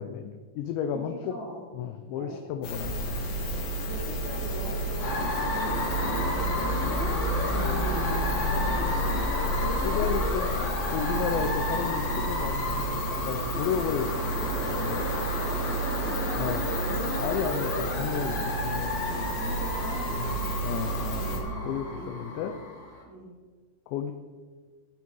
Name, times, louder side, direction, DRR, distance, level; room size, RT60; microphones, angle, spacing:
voice 1, 0.0-1.4 1.7-3.2 7.5-7.7 9.8-10.5 10.9-15.1 16.4-16.6 17.2-19.3 20.2-21.3 21.6-22.5 23.9-24.1, left 8 dB, 80° left, 6 dB, 3.0 m, -33 dB
voice 2, 0.9-1.7 2.2-2.4 3.9-8.2 8.4-9.4 15.8-17.9 18.2-18.5 19.3-22.2 23.0-23.3, right 1 dB, 35° right, -6 dB, 3.6 m, -41 dB
sound 1, 2.6-21.4, right 1 dB, 40° left, 3.0 m, -31 dB
sound 2, 5.0-23.0, left 2 dB, 60° left, 4.4 m, -32 dB
Bowed string instrument, 5.6-9.4, right 15 dB, 85° right, 2.9 m, -40 dB
21.0 x 9.4 x 4.7 m, 1.4 s
omnidirectional pair, 5.3 m